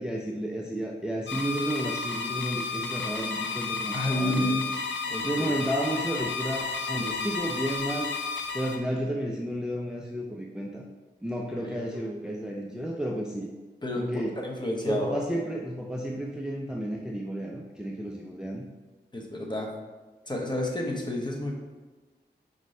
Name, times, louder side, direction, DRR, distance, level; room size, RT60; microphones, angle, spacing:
voice 1, 0.0-4.6 5.2-8.1 8.5-10.8 11.2-13.5 14.0-14.3 14.8-18.6, right 1 dB, 5° right, -1 dB, 0.4 m, -32 dB
sound 1, 1.3-8.8, left 4 dB, 80° left, 0.5 m, -32 dB
voice 2, 3.9-4.7 5.1-5.6 6.9-7.2 11.6-11.8 13.8-15.2 19.1-19.7 20.3-21.5, left 1 dB, 25° left, 0 dB, 0.9 m, -30 dB
5.1 x 2.7 x 3.2 m, 1.3 s
cardioid pair, 55°, 19 cm